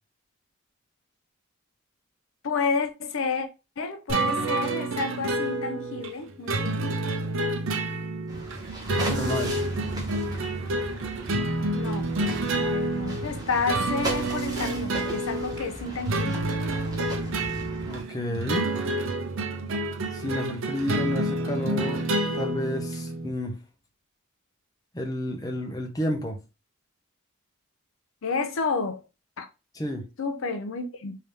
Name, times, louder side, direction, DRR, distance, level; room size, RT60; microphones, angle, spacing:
voice 1, 2.4-3.5 3.8-6.9 11.7-12.1 12.5-16.5 28.2-29.0 29.4-29.5 30.2-31.2, left 4 dB, 75° left, 0.5 m, -30 dB
sound 1, 4.1-23.3, right 2 dB, 70° right, 0.6 m, -29 dB
sound 2, 8.3-18.0, right 2 dB, 20° right, 0.8 m, -37 dB
voice 2, 9.1-9.7 17.8-18.7 20.1-23.6 24.9-26.4 29.7-30.1, left 1 dB, 15° left, 0.6 m, -31 dB
3.3 x 2.7 x 3.3 m
head